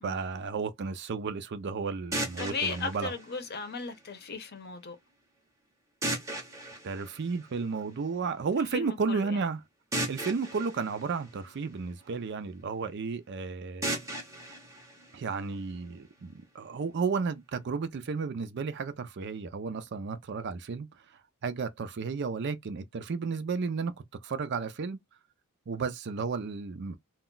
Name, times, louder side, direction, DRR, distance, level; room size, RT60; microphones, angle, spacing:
voice 1, 0.0-3.1 6.8-9.6 10.1-13.9 15.1-20.9 21.4-23.9 24.2-25.0 25.7-27.0, right 5 dB, 55° right, 0.4 m, -33 dB
sound 1, 2.1-4.1 6.0-8.0 9.9-12.1 13.8-15.8, right 1 dB, 15° right, 0.7 m, -37 dB
voice 2, 2.4-5.0 8.7-9.4, left 4 dB, 50° left, 0.7 m, -36 dB
2.3 x 2.1 x 3.8 m
head